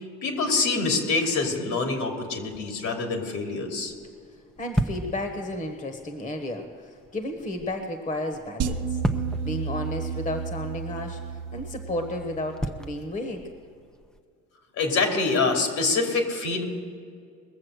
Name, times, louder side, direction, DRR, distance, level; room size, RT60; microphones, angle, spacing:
voice 1, 0.2-3.9 14.8-16.7, left 3 dB, 70° left, 2 dB, 2.8 m, -25 dB
sound 1, 2.5-14.2, equal, ahead, 0.6 m, -37 dB
voice 2, 4.6-9.0 9.4-11.2 11.5-13.5, left 1 dB, 25° left, 5 dB, 1.3 m, -32 dB
sound 2, 8.6-12.9, right 6 dB, 55° right, 0.8 m, -32 dB
21.5 x 7.4 x 6.4 m, 2.2 s
cardioid pair, 120°, 29 cm